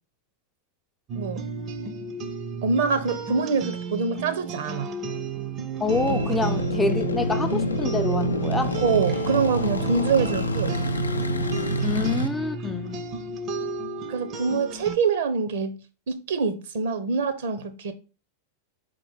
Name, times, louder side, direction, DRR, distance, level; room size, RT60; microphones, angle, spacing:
sound 1, 1.1-15.0, right 3 dB, 30° right, 0.7 m, -33 dB
voice 1, 2.6-4.9 8.8-10.8 14.1-15.8 16.1-17.9, right 5 dB, 55° right, 1.0 m, -25 dB
voice 2, 5.8-8.8 11.8-13.1, left 3 dB, 10° left, 0.5 m, -27 dB
sound 2, 5.9-12.3, right 1 dB, 75° left, 0.6 m, -27 dB
5.1 x 3.8 x 5.0 m
figure-of-eight pair, 90°, 0 cm